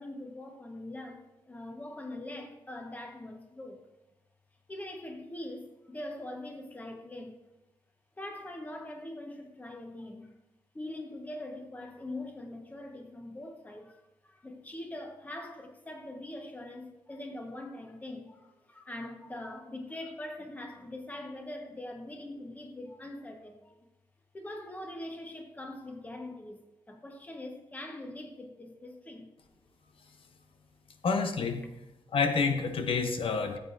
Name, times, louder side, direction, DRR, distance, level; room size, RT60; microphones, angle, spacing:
voice 1, 0.0-3.8 4.7-7.4 8.2-10.3 10.7-23.9 24.3-29.3, left 1 dB, 15° left, 1.2 m, -42 dB
voice 2, 31.0-31.6 32.1-33.6, left 4 dB, 80° left, 0.9 m, -28 dB
16.0 x 7.9 x 2.6 m
wide cardioid pair, 165°, 9 cm